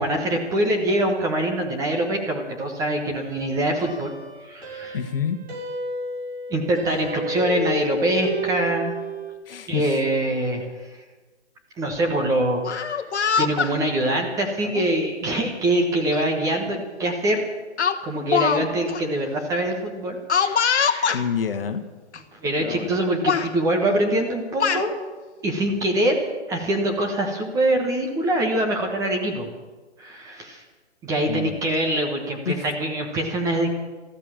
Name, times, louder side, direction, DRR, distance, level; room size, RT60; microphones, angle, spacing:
voice 1, 0.0-4.1 4.4-5.0 6.5-8.9 9.7-10.6 11.8-13.0 13.4-17.4 18.0-21.1 22.4-24.9 25.4-26.2 26.5-29.5 30.0-30.6 31.0-33.7, right 1 dB, 10° right, 2 dB, 1.2 m, -24 dB
sound 1, 3.1-9.3, left 1 dB, 60° right, 6.5 m, -32 dB
voice 2, 4.9-5.4 9.5-10.0 21.1-21.8 31.2-31.6 32.4-32.7, left 7 dB, 50° left, 7 dB, 1.5 m, -27 dB
Speech, 12.5-13.7 14.6-14.9 16.1-16.2 16.6-16.8 17.8-18.6 18.9-19.0 20.3-21.2 22.1-22.2 22.6-23.0 23.3-23.5 24.3-24.9, left 6 dB, 70° left, 1.3 m, -23 dB
13.5 x 13.5 x 7.4 m, 1.3 s
hypercardioid pair, 145°, 35 cm